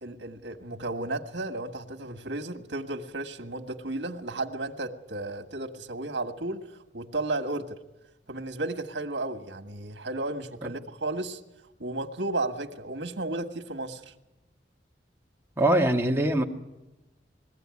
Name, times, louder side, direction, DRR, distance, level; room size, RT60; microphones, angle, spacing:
voice 1, 0.0-7.8 8.3-11.4 11.8-14.1, right 2 dB, 75° right, 5 dB, 1.6 m, -33 dB
voice 2, 15.6-16.4, right 1 dB, 15° right, 1 dB, 1.5 m, -22 dB
21.5 x 16.0 x 9.7 m, 1.0 s
head